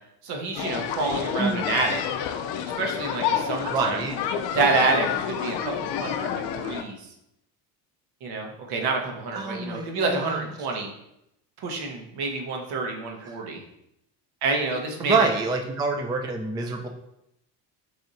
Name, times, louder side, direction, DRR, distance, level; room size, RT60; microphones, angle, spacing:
voice 1, 0.2-2.0 2.8-4.0 4.5-7.0 8.2-10.9 11.6-13.6 14.4-15.3, right 3 dB, 65° right, 2 dB, 1.0 m, -28 dB
sound 1, 0.6-6.8, left 8 dB, 65° left, 0.5 m, -29 dB
voice 2, 3.7-4.2 9.4-10.4 13.2-13.4 15.0-16.9, right 4 dB, 10° right, 3 dB, 0.3 m, -26 dB
3.4 x 2.5 x 4.0 m, 0.81 s
supercardioid pair, 85°, 42 cm